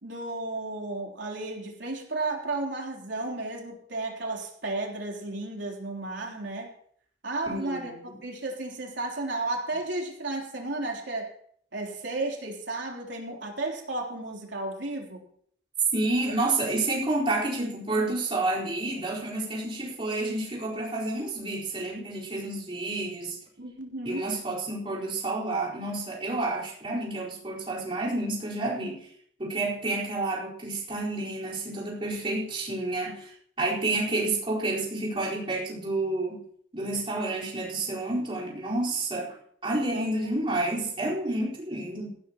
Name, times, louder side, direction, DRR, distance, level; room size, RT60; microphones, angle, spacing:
voice 1, 0.0-6.7 7.2-7.9 8.2-11.3 11.7-15.2 23.6-24.3 39.9-40.1, right 2 dB, 85° right, 0 dB, 3.5 m, -33 dB
voice 2, 7.5-8.2 15.9-23.4 24.0-29.1 29.4-36.4 36.7-39.3 39.6-42.1, right 2 dB, 30° right, -5 dB, 4.3 m, -30 dB
18.5 x 15.5 x 3.0 m, 0.63 s
head